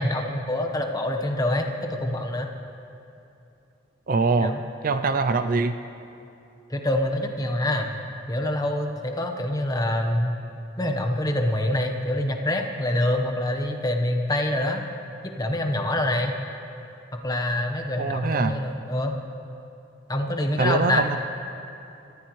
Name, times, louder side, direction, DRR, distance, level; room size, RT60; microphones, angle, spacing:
voice 1, 0.0-2.5 4.4-4.6 6.7-7.9 8.3-10.4 10.8-14.8 15.4-16.4 17.1-19.2 20.1-21.1, left 1 dB, 20° left, 3 dB, 1.0 m, -25 dB
voice 2, 4.1-4.5 4.8-5.8 18.0-18.6 20.6-21.2, right 4 dB, 45° right, 9 dB, 0.4 m, -23 dB
23.5 x 14.5 x 3.1 m, 2.7 s
head